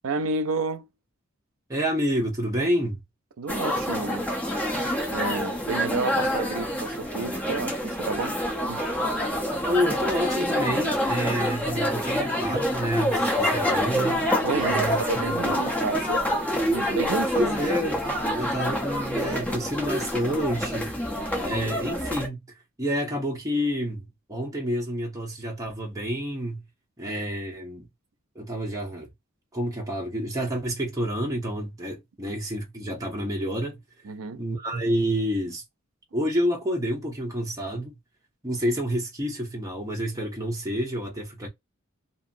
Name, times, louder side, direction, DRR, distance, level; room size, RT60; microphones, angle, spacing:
voice 1, 0.0-0.9 3.4-4.3 4.6-4.7 5.1-8.4 8.7-8.9 14.4-16.4 16.7-17.5 34.0-34.5, right 4 dB, 85° right, 0.5 m, -31 dB
voice 2, 1.7-3.0 9.6-14.2 14.6-15.5 17.3-18.0 18.3-20.9 21.4-22.4 22.8-26.6 27.0-27.9 28.3-29.1 29.5-33.8 34.4-35.6 36.1-38.0 38.4-41.5, equal, 15° right, 0.9 m, -29 dB
sound 1, 3.5-22.3, equal, 5° left, 0.6 m, -27 dB
2.8 x 2.6 x 2.6 m
head